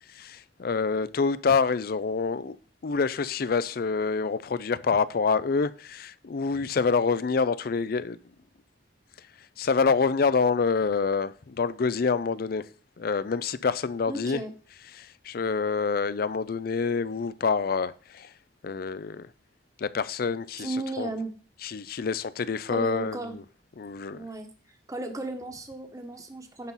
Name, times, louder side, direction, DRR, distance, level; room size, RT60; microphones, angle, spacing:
voice 1, 0.1-2.6 2.8-8.2 9.6-12.6 13.0-14.4 15.0-18.3 18.6-19.3 19.8-21.1 21.6-23.4 23.8-24.3, left 5 dB, 55° left, 0.4 m, -27 dB
voice 2, 14.1-14.5 20.6-21.3 22.7-23.4 24.1-24.5 24.9-26.7, right 2 dB, 20° right, 1.1 m, -34 dB
10.5 x 4.1 x 5.6 m
head